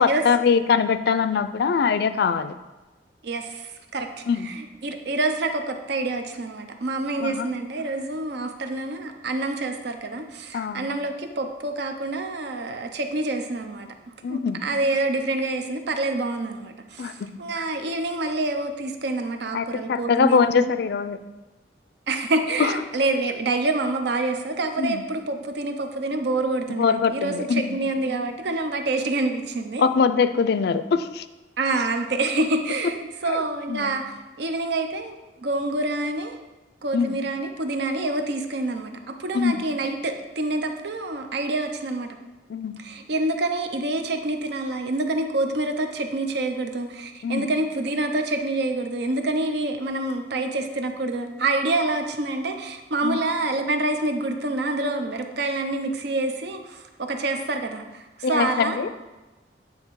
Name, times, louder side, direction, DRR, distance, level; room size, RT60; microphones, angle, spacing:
voice 1, 0.0-2.5 4.3-4.5 7.2-7.5 10.5-10.9 14.2-14.6 17.0-17.1 19.5-21.2 22.6-22.7 24.8-25.0 26.7-27.8 29.8-31.2 33.3-33.4 33.7-34.0 36.9-37.2 39.3-39.6 42.5-42.8 47.2-47.5 53.0-53.2 58.2-58.9, left 5 dB, 65° left, 12 dB, 0.4 m, -22 dB
voice 2, 3.2-13.9 14.3-20.7 22.1-29.8 31.6-36.3 36.8-42.1 42.8-58.8, right 2 dB, 65° right, 6 dB, 0.6 m, -27 dB
8.7 x 3.5 x 4.6 m, 1.1 s
head